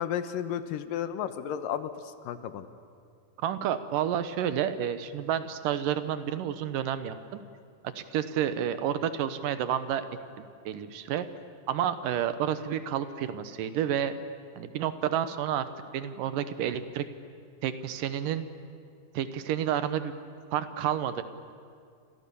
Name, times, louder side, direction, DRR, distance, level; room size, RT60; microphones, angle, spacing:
voice 1, 0.0-2.7, left 9 dB, 80° left, 11 dB, 2.7 m, -33 dB
voice 2, 3.4-7.4 8.0-10.1 10.4-11.3 11.7-14.1 14.6-15.7 15.9-17.1 17.6-18.4 19.1-20.2 20.5-21.2, right 10 dB, 75° right, 11 dB, 2.6 m, -30 dB
30.0 x 26.5 x 7.0 m, 2.3 s
omnidirectional pair, 4.0 m